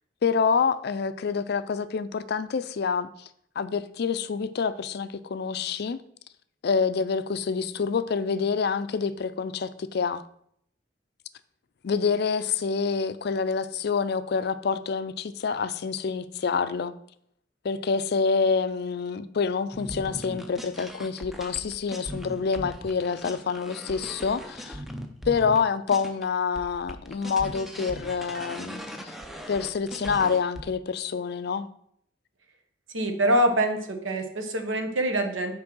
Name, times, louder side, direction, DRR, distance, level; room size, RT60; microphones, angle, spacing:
voice 1, 0.2-3.1 3.6-6.0 6.6-10.2 11.8-16.9 17.6-24.8 25.3-29.1 29.5-31.7, left 5 dB, 55° left, 0.4 m, -27 dB
sound 1, 19.7-26.2 26.5-30.6, equal, ahead, 0.6 m, -39 dB
voice 2, 32.9-35.5, right 1 dB, 85° right, 1.1 m, -25 dB
6.1 x 4.6 x 6.0 m
head